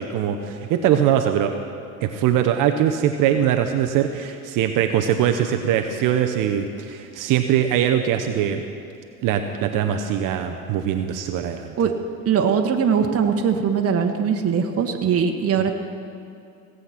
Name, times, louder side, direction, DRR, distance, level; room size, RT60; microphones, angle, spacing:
voice 1, 0.0-1.5 2.0-8.6 9.2-11.7, right 10 dB, 50° right, 6 dB, 0.9 m, -22 dB
voice 2, 12.2-15.7, right 7 dB, 35° right, 4 dB, 1.4 m, -21 dB
17.5 x 8.0 x 5.9 m, 2.6 s
hypercardioid pair, 85°, 41 cm